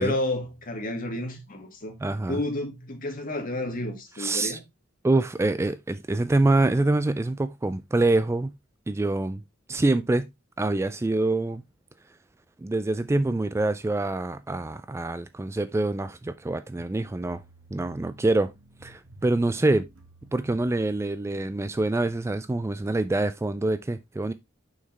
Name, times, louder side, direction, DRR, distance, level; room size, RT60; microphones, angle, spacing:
voice 1, 0.0-2.0 2.3-4.6, left 2 dB, 45° left, 2.0 m, -31 dB
voice 2, 2.0-2.4 4.2-4.6 5.0-8.5 8.9-9.4 9.7-10.3 10.6-11.6 12.6-17.4 17.7-18.5 18.8-19.8 20.3-24.3, right 2 dB, 15° right, 0.3 m, -25 dB
sound 1, 16.8-22.1, right 1 dB, 85° right, 1.8 m, -52 dB
6.5 x 5.6 x 3.3 m
head